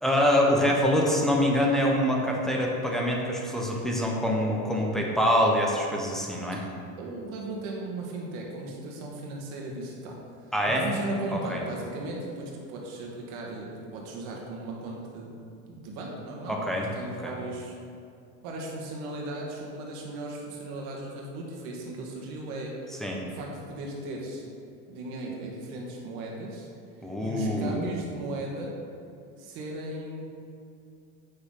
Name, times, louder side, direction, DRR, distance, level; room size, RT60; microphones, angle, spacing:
voice 1, 0.0-6.6 10.5-10.9 11.3-11.6 16.5-16.9 17.2-17.3 23.0-23.2 27.0-27.9, equal, ahead, -2 dB, 1.2 m, -25 dB
voice 2, 7.0-10.2 10.4-15.4 15.6-17.8 18.4-24.4 24.9-26.7 27.2-28.7 29.4-30.2, right 2 dB, 70° right, -1 dB, 1.9 m, -37 dB
8.6 x 6.3 x 3.9 m, 2.5 s
supercardioid pair, 105°, 44 cm